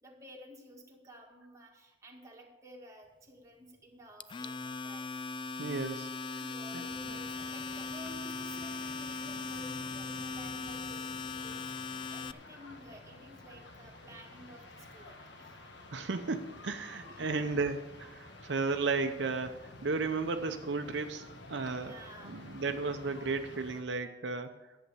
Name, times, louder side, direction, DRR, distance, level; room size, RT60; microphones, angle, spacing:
voice 1, 0.0-5.1 6.4-15.6 17.0-17.4 21.7-22.5, right 1 dB, 15° right, -1 dB, 1.8 m, -53 dB
Domestic sounds home sounds, 4.2-12.3, left 4 dB, 25° left, 0.3 m, -39 dB
voice 2, 5.6-6.1 6.7-7.2 15.9-21.9 22.2-24.5, right 4 dB, 75° right, 6 dB, 0.7 m, -34 dB
calm beach with volley game in background, 6.9-23.8, left 2 dB, 70° left, 1.5 m, -51 dB
11.0 x 7.7 x 7.0 m, 1.1 s
head